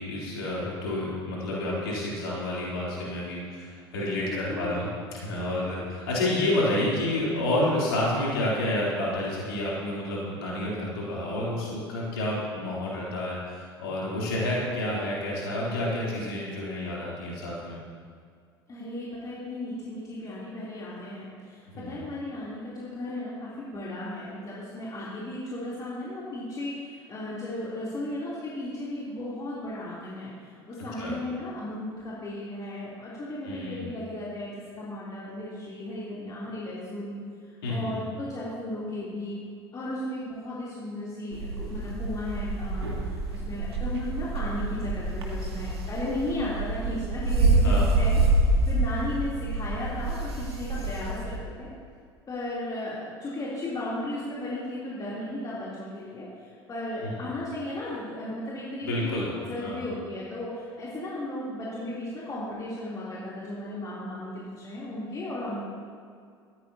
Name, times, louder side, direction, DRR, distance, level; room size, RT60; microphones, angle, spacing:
voice 1, 0.0-4.9 5.1-17.8 21.7-22.0 31.0-31.2 33.4-33.8 37.6-38.0 47.6-48.0 57.0-57.1 58.8-59.8, left 1 dB, 70° left, -6 dB, 3.7 m, -29 dB
voice 2, 4.3-4.9 5.6-5.9 18.7-37.2 37.7-39.4 39.7-48.2 48.6-51.7 52.3-59.2 59.5-65.6, left 1 dB, 25° left, -8 dB, 3.6 m, -35 dB
sound 1, 41.3-51.4, right 2 dB, 75° right, 1.9 m, -27 dB
18.5 x 14.5 x 3.0 m, 2.2 s
figure-of-eight pair, 70°, 13 cm